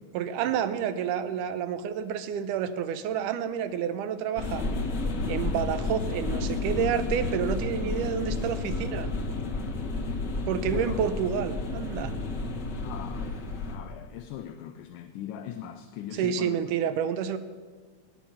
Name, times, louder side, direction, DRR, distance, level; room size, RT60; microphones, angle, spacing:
voice 1, 0.1-4.6 5.3-9.1 10.5-12.1 16.2-17.4, right 8 dB, 80° right, 11 dB, 2.3 m, -29 dB
sound 1, 4.4-13.8, left 3 dB, 50° left, 1.4 m, -31 dB
voice 2, 10.6-11.0 12.8-16.6, left 10 dB, 80° left, 7 dB, 2.2 m, -40 dB
18.5 x 9.4 x 5.7 m, 1.5 s
omnidirectional pair, 3.7 m